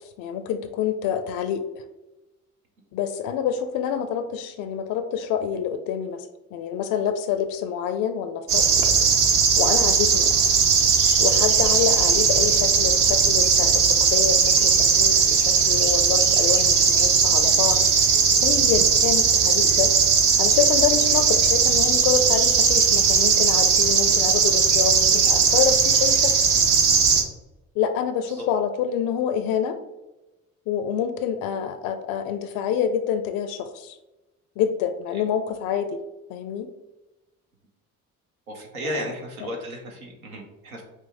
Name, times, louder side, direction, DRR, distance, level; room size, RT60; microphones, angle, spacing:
voice 1, 0.0-1.8 2.9-8.7 9.6-10.4 11.2-19.9 20.4-26.3 27.8-29.8 30.7-34.0 34.6-36.0 36.3-36.7 38.8-39.1 39.4-39.5, left 8 dB, 55° left, 9 dB, 0.5 m, -27 dB
sound 1, 8.5-27.2, right 6 dB, 50° right, 0.8 m, -18 dB
voice 2, 38.5-40.8, equal, 85° right, 1 dB, 0.8 m, -34 dB
5.3 x 2.4 x 3.5 m, 1.0 s
figure-of-eight pair, 45°, 42 cm